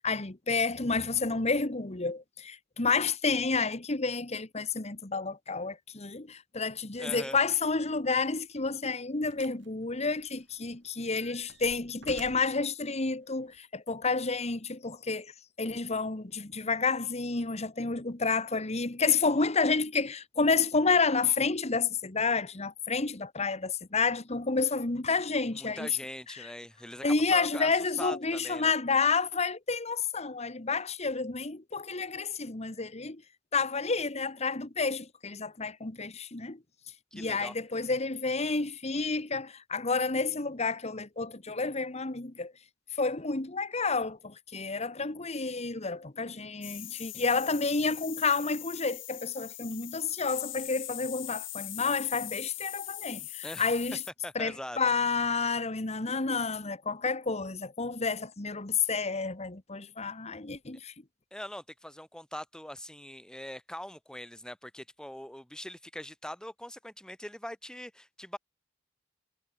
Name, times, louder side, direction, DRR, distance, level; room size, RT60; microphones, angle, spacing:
voice 1, 0.0-15.3 15.6-25.9 26.3-26.5 27.0-33.2 33.5-36.6 37.1-42.5 43.0-54.0 54.3-60.9, left 4 dB, 35° left, 1.5 m, -30 dB
voice 2, 7.0-7.4 25.5-27.0 27.3-27.7 28.0-28.7 37.1-37.5 53.4-53.7 54.2-54.8 61.3-68.4, left 1 dB, 5° left, 1.8 m, -42 dB
sound 1, 8.1-8.3 9.3-9.7 10.0-10.7 11.1-12.6 13.5-13.6, right 3 dB, 70° right, 4.5 m, -51 dB
sound 2, 46.6-54.1, left 16 dB, 80° left, 5.6 m, -41 dB
head